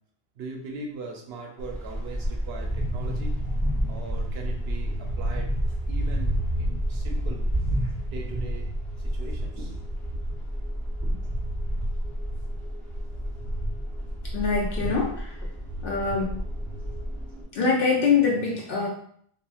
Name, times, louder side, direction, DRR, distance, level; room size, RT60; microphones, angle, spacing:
voice 1, 0.4-3.4 3.9-5.5 5.9-8.7 9.0-10.2 11.0-11.3, right 3 dB, 80° right, 1 dB, 0.8 m, -40 dB
sound 1, 1.6-17.4, equal, ahead, 0.6 m, -29 dB
voice 2, 14.3-15.4 15.8-16.3 17.5-18.9, left 5 dB, 65° left, -3 dB, 0.7 m, -24 dB
2.9 x 2.4 x 2.4 m, 0.62 s
omnidirectional pair, 1.0 m